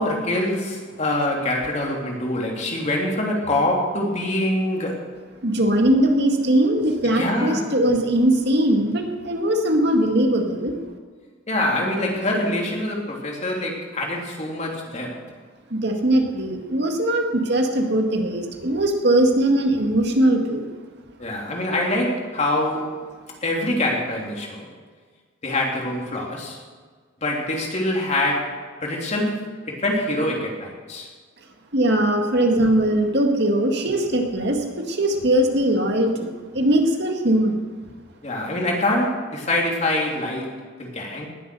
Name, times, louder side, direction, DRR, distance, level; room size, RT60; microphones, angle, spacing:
voice 1, 0.0-5.1 7.1-7.7 11.5-15.2 21.2-22.9 23.4-24.7 25.4-26.6 27.2-31.1 38.2-41.3, left 1 dB, 35° left, -1 dB, 3.1 m, -25 dB
voice 2, 5.4-10.8 15.7-20.7 31.7-37.6, right 1 dB, 60° right, 3 dB, 2.0 m, -20 dB
19.5 x 8.2 x 7.0 m, 1.6 s
head